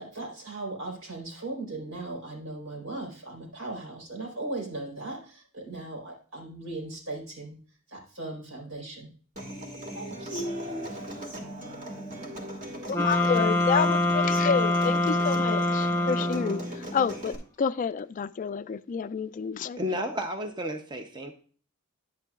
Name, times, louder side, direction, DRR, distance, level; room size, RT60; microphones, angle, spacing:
voice 1, 0.0-7.6 7.9-9.1 9.9-11.2, right 2 dB, 80° right, 4.2 m, -38 dB
Human voice / Acoustic guitar, 9.4-17.3, right 1 dB, 40° right, 2.1 m, -39 dB
voice 2, 12.9-16.6 16.9-19.8, left 6 dB, 40° left, 0.3 m, -29 dB
sound 1, 12.9-16.8, left 2 dB, 10° left, 1.0 m, -25 dB
voice 3, 19.8-21.3, equal, 20° right, 0.7 m, -32 dB
10.5 x 9.6 x 2.4 m
head